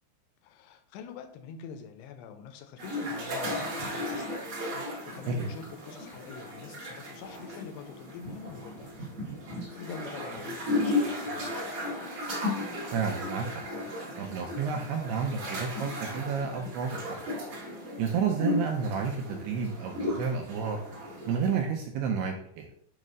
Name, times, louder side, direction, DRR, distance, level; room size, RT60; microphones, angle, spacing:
voice 1, 0.4-4.4 4.7-8.9 9.6-11.8, left 6 dB, 85° left, 7 dB, 2.5 m, -45 dB
sound 1, 2.8-21.6, left 2 dB, 45° right, 2.2 m, -35 dB
voice 2, 12.9-13.6 14.2-17.2 18.0-20.8 21.3-22.7, right 6 dB, 85° right, 3 dB, 2.4 m, -31 dB
7.6 x 3.2 x 5.2 m, 0.63 s
omnidirectional pair, 5.2 m